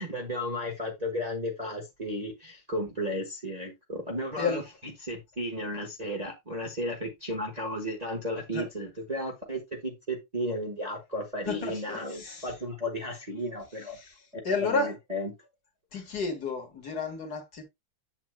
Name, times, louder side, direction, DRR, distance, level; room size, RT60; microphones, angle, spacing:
voice 1, 0.0-4.6 5.0-14.0 14.6-15.3, equal, 25° right, 1.3 m, -34 dB
voice 2, 11.4-12.5 14.0-14.9 15.9-17.6, left 4 dB, 50° left, 2.1 m, -32 dB
8.0 x 7.4 x 2.3 m
omnidirectional pair, 2.2 m